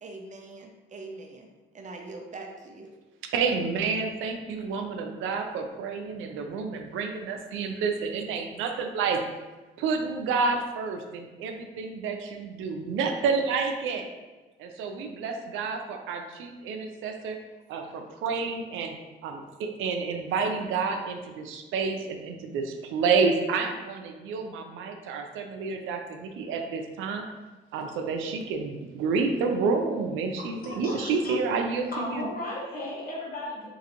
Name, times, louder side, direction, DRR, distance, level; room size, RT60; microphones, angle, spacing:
voice 1, 0.0-1.5 1.7-2.9, right 3 dB, 40° right, 2 dB, 0.5 m, -42 dB
voice 2, 3.3-9.2 9.8-14.1 14.6-17.4 17.7-18.9 19.2-27.2 27.7-32.3, right 4 dB, 90° right, 4 dB, 0.4 m, -29 dB
voice 3, 30.4-31.3 31.9-33.7, left 1 dB, 45° left, -5 dB, 1.4 m, -36 dB
3.8 x 2.5 x 2.8 m, 1.2 s
cardioid pair, 90°, 20 cm